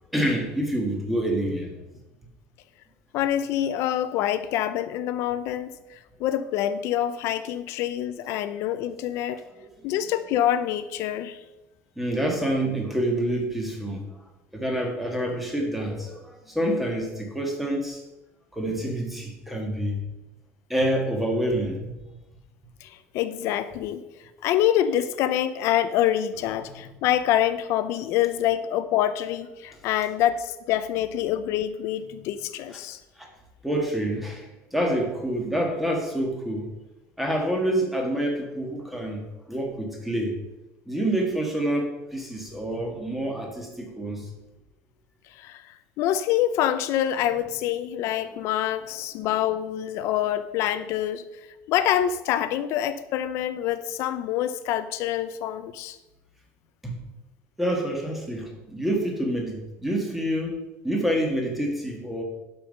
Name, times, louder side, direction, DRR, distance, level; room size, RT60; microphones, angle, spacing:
voice 1, 0.1-1.8 9.6-9.7 12.0-14.1 14.5-18.0 18.5-20.0 20.7-22.2 33.2-33.3 33.6-36.7 37.2-40.4 40.8-44.3 49.2-49.3 56.8-57.0 57.6-62.2, right 1 dB, ahead, 2 dB, 1.5 m, -27 dB
voice 2, 3.1-9.4 9.8-11.4 22.8-24.0 24.4-33.0 45.3-51.2 51.7-56.0, left 11 dB, 50° left, 13 dB, 0.5 m, -26 dB
11.5 x 5.4 x 5.4 m, 1.0 s
cardioid pair, 175°, 6 cm